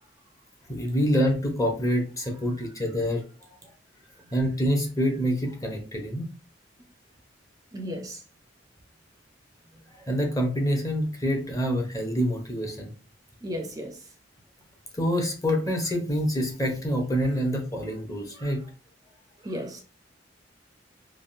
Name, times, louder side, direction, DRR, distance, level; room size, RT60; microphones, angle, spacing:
voice 1, 0.7-3.2 4.3-6.3 9.9-12.9 14.9-18.7, equal, 20° left, 0.7 m, -26 dB
voice 2, 7.7-8.2 13.4-14.0 18.4-18.5 19.4-19.8, equal, 20° right, 0.4 m, -34 dB
3.4 x 2.3 x 2.5 m
head